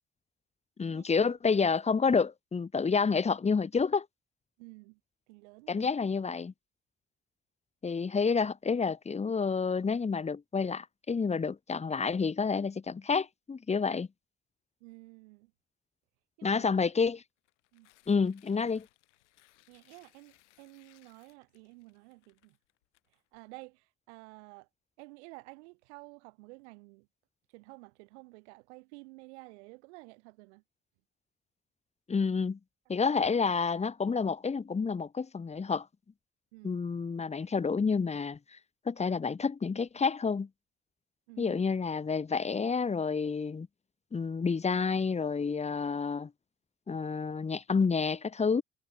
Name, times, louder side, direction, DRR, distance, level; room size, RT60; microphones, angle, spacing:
voice 1, 0.8-4.1 5.7-6.5 7.8-14.1 16.4-17.2 18.1-18.9 32.1-32.6 32.9-35.9 36.6-38.4 38.9-40.5 41.4-43.7 44.1-46.3 46.9-48.6, left 5 dB, 20° left, 0.8 m, -29 dB
voice 2, 4.6-5.0 5.3-6.0 14.8-15.5 16.4-16.7 17.7-17.9 19.7-22.6 23.3-24.7 25.0-27.1 27.5-30.6 36.5-36.8 41.3-41.6, right 27 dB, 70° right, 2.2 m, -52 dB
Tearing, 17.4-23.6, left 17 dB, 75° left, 3.9 m, -66 dB
figure-of-eight pair, 45°, 35 cm